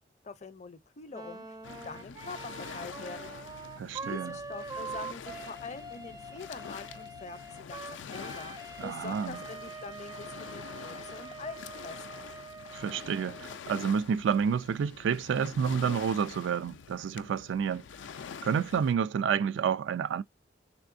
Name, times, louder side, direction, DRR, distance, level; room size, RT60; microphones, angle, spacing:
voice 1, 0.2-3.3 4.0-12.3, left 4 dB, 40° left, 0.6 m, -45 dB
Wind instrument woodwind instrument, 1.1-13.6, right 3 dB, 20° right, 0.4 m, -44 dB
Waves surf, 1.6-18.9, left 7 dB, 90° left, 0.4 m, -46 dB
voice 2, 3.8-4.3 8.8-9.4 12.7-17.8 18.4-20.2, right 7 dB, 85° right, 0.3 m, -29 dB
3.5 x 3.3 x 2.5 m
head